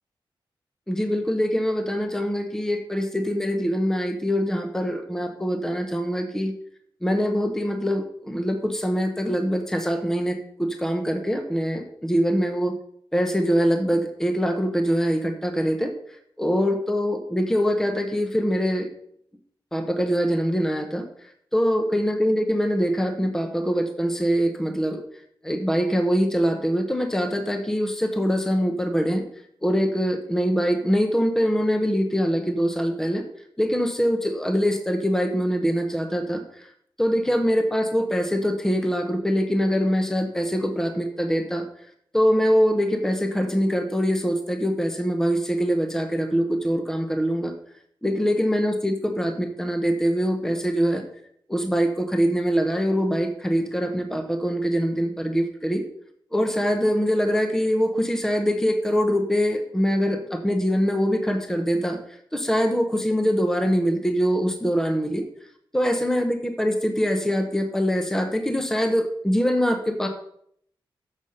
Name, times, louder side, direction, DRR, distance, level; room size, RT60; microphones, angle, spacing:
voice 1, 0.9-6.5 7.0-12.7 13.1-15.9 16.4-18.9 19.7-21.0 21.5-25.0 25.4-29.2 29.6-33.2 33.6-36.7 37.0-41.6 42.1-47.5 48.0-51.0 51.5-55.8 56.3-62.0 62.3-65.2 65.7-70.1, equal, 5° left, 4 dB, 0.8 m, -23 dB
7.1 x 6.5 x 5.5 m, 0.68 s
wide cardioid pair, 155°, 9 cm